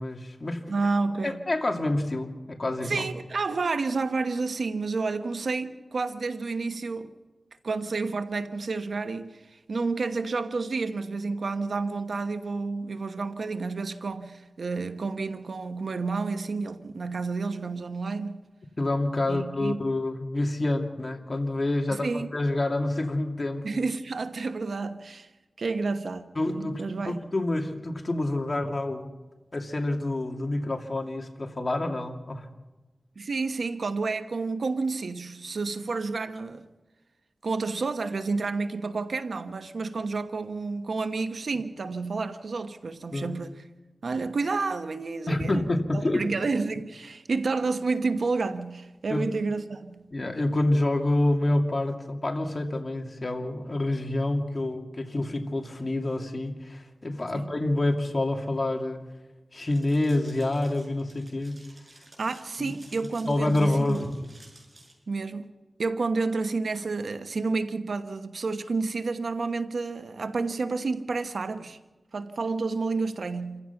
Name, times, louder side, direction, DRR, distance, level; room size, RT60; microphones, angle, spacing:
voice 1, 0.0-0.6 1.2-3.1 18.8-23.7 26.3-29.1 29.5-32.5 43.1-43.4 45.3-46.2 49.1-49.3 50.1-59.0 59.5-61.6 62.6-62.7 63.2-64.1, left 2 dB, 40° left, 2.6 m, -27 dB
voice 2, 0.7-1.4 2.8-7.1 7.6-18.4 19.3-19.8 21.9-22.3 23.6-25.3 25.6-27.2 33.2-36.6 37.4-43.6 44.0-45.6 45.9-49.9 57.3-57.5 62.2-64.1 65.1-65.5 65.8-71.8 72.1-73.6, right 4 dB, 75° right, 1.1 m, -30 dB
sound 1, 59.6-64.9, right 2 dB, 35° right, 7.6 m, -54 dB
28.5 x 15.5 x 5.9 m
wide cardioid pair, 65°, 0 cm